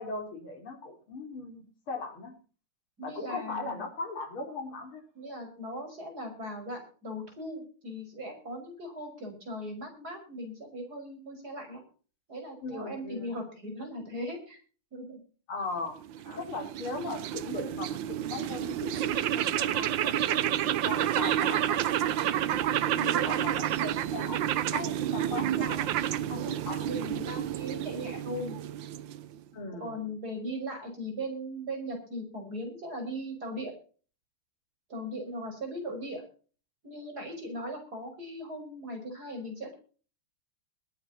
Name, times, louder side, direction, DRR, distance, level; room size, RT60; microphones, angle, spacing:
voice 1, 0.0-2.3 3.0-5.0 12.6-13.3 15.5-16.0 16.4-22.2 22.7-26.0 26.3-26.9 27.3-27.4 29.5-29.9, left 3 dB, 75° left, 3 dB, 4.5 m, -39 dB
voice 2, 3.0-3.9 5.1-11.8 12.3-14.6 14.9-15.2 16.2-16.4 22.8-23.4 26.3-26.5 26.8-28.6 29.8-33.7 34.9-36.2 36.8-39.7, equal, 45° right, 3 dB, 6.4 m, -38 dB
sound 1, 16.0-29.4, right 11 dB, 65° right, 1.4 m, -30 dB
21.5 x 9.5 x 4.2 m, 0.39 s
omnidirectional pair, 2.4 m